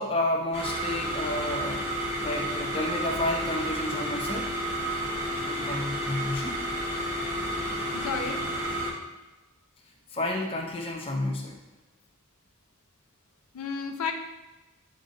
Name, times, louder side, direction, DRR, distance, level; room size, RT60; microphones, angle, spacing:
voice 1, 0.0-1.9 2.2-4.5 5.4-6.6 10.1-11.6, left 1 dB, 25° left, 0 dB, 0.5 m, -31 dB
sound 1, 0.5-8.9, equal, 15° right, 1.0 m, -31 dB
voice 2, 7.9-8.4 13.5-14.1, left 5 dB, 80° left, 5 dB, 0.5 m, -32 dB
7.8 x 2.6 x 2.5 m, 1.1 s
head